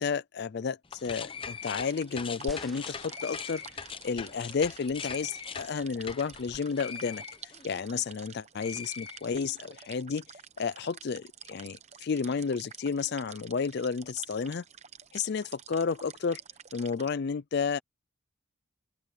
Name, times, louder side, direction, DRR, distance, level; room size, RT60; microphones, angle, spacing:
voice 1, 0.0-14.6 15.1-16.4 16.7-17.8, left 5 dB, 50° left, 0.4 m, -32 dB
sound 1, 0.8-8.3 8.6-9.7, left 6 dB, 25° left, 0.7 m, -42 dB
sound 2, 1.8-17.1, right 8 dB, 30° right, 0.9 m, -50 dB
sound 3, 2.5-4.0 4.7-4.8, equal, ahead, 1.1 m, -46 dB
open air
head